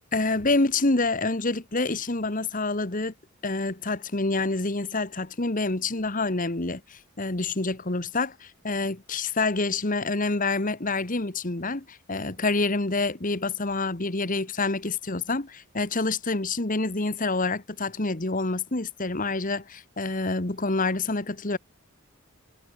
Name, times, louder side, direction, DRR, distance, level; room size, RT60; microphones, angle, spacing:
voice 1, 0.1-3.1 3.4-21.6, left 3 dB, 40° left, 1.6 m, -27 dB
head